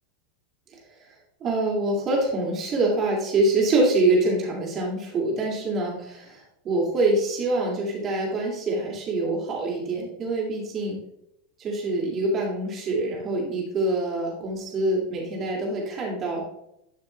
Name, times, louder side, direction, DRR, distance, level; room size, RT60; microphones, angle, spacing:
voice 1, 1.4-11.0 11.6-16.4, right 2 dB, 30° right, -2 dB, 2.9 m, -25 dB
11.5 x 5.9 x 3.4 m, 0.80 s
figure-of-eight pair, 85°, 0 cm